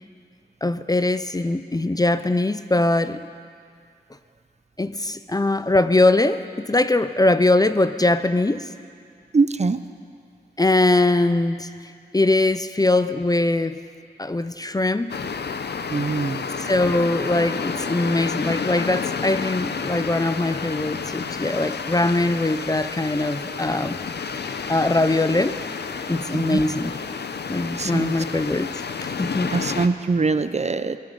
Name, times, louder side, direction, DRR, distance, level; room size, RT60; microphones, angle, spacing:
voice 1, 0.6-3.2 4.8-6.4 6.7-8.7 10.6-11.7 12.1-13.8 14.2-15.2 16.6-24.0 24.7-25.6 26.1-26.9 27.5-29.5, left 2 dB, 20° left, 12 dB, 0.5 m, -21 dB
voice 2, 9.3-9.8 15.9-16.5 26.3-26.6 27.8-28.1 29.5-31.0, right 4 dB, 40° right, 12 dB, 0.5 m, -23 dB
sound 1, 15.1-29.9, left 5 dB, 65° left, 0.7 m, -30 dB
22.0 x 9.1 x 5.4 m, 2.3 s
cardioid pair, 65°, 18 cm